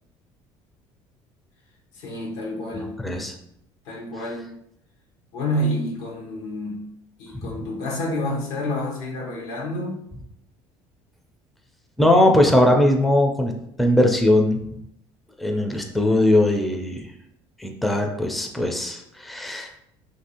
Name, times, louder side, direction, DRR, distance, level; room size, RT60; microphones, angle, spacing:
voice 1, 1.9-3.0 3.8-4.6 5.3-6.8 7.2-10.0, left 1 dB, 85° left, 0 dB, 0.8 m, -29 dB
voice 2, 3.0-3.3 7.3-7.7 12.0-13.5 13.8-14.6 15.4-17.1 17.6-19.7, left 1 dB, ahead, 2 dB, 0.4 m, -20 dB
2.9 x 2.6 x 2.8 m, 0.75 s
supercardioid pair, 100°, 11 cm